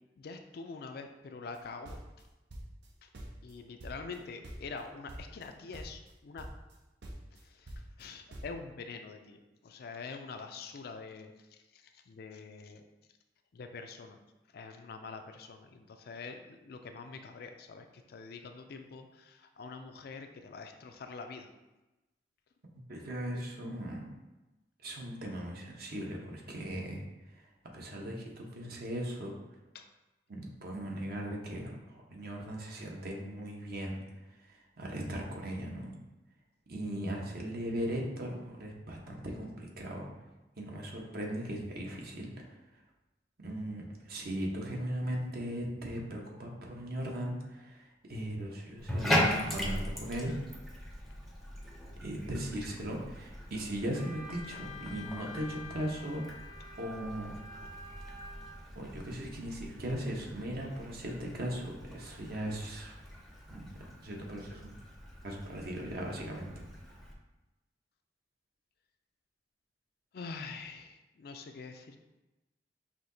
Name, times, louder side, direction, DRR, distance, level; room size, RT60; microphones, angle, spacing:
voice 1, 0.2-2.0 3.0-3.1 3.4-6.5 7.3-12.8 13.5-14.2 14.5-21.5 29.7-29.9 50.2-50.4 62.2-62.3 70.1-72.0, left 4 dB, 60° left, 6 dB, 0.4 m, -45 dB
sound 1, 1.5-2.9 3.1-4.2 4.4-4.8 5.1-5.5 5.7-6.1 6.4-6.8 7.0-8.6, right 1 dB, 85° right, 0.8 m, -46 dB
voice 2, 22.9-24.1 24.8-27.0 27.3-27.4 27.7-29.4 30.3-34.0 34.5-35.9 36.7-40.1 40.6-42.5 43.4-50.3 52.0-56.2 56.8-57.3 58.7-62.9 63.5-63.7 64.0-64.7 65.2-66.5, right 1 dB, 60° right, -1 dB, 0.9 m, -38 dB
Bathtub (filling or washing), 48.8-67.1, left 1 dB, ahead, 0.5 m, -39 dB
Wind instrument woodwind instrument, 53.9-58.6, left 3 dB, 35° right, 1.0 m, -48 dB
5.8 x 2.7 x 2.7 m, 1.0 s
head